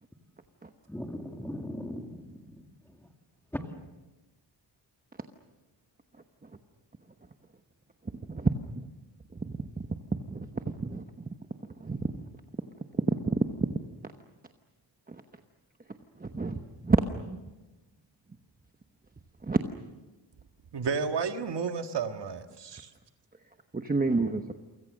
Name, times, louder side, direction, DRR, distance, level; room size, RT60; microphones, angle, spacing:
voice 1, 0.9-3.1 3.5-3.6, left 1 dB, 5° left, 2.1 m, -39 dB
voice 2, 8.3-8.8 9.3-9.9 10.1-11.0 11.8-12.2 12.9-13.7 15.1-15.2 16.2-17.4 19.4-19.6 23.7-24.5, right 3 dB, 20° right, 1.0 m, -29 dB
voice 3, 20.7-22.9, right 5 dB, 65° right, 1.7 m, -32 dB
29.5 x 24.5 x 6.5 m
wide cardioid pair, 170°, 45 cm